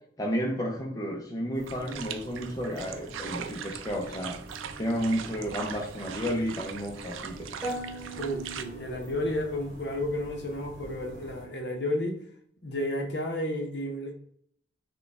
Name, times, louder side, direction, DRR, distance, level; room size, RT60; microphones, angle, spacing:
voice 1, 0.2-4.4 4.8-7.5, equal, 20° left, 0 dB, 0.5 m, -32 dB
sound 1, 1.5-11.5, right 1 dB, 60° right, 1.3 m, -46 dB
sound 2, 1.7-8.6, right 8 dB, 80° right, 0.4 m, -41 dB
sound 3, 7.6-9.6, right 1 dB, 5° right, 1.3 m, -39 dB
voice 2, 8.2-12.2 12.6-14.1, left 1 dB, 55° left, 4 dB, 0.7 m, -32 dB
6.3 x 2.3 x 3.4 m, 0.66 s
head